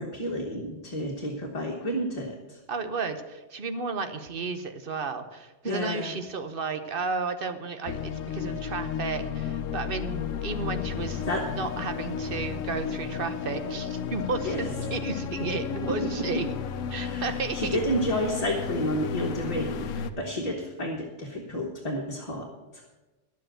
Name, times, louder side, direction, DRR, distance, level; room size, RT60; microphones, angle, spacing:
voice 1, 0.0-2.6 5.6-6.1 11.3-11.5 14.4-14.6 15.9-16.4 17.0-22.5 22.7-22.8, equal, 30° left, -1 dB, 1.3 m, -31 dB
voice 2, 2.7-11.2 11.6-16.5 16.9-17.8, right 4 dB, 50° right, 9 dB, 1.0 m, -33 dB
sound 1, 7.9-20.1, left 7 dB, 85° left, 1.1 m, -33 dB
10.5 x 7.6 x 7.7 m, 1.2 s
omnidirectional pair, 1.3 m